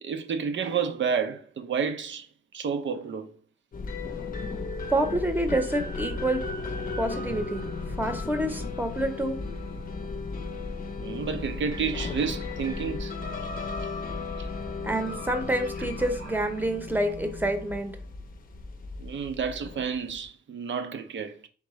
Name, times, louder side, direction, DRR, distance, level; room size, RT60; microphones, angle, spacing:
voice 1, 0.0-2.3 2.5-3.3 11.0-13.1 14.4-14.5 19.0-21.5, right 6 dB, 75° right, 0.6 m, -30 dB
sound 1, 3.7-20.2, left 3 dB, 45° left, 0.6 m, -35 dB
voice 2, 4.9-7.6 8.0-9.4 14.8-17.9, right 1 dB, 10° right, 0.8 m, -28 dB
3.7 x 3.6 x 3.1 m
wide cardioid pair, 100°, 20 cm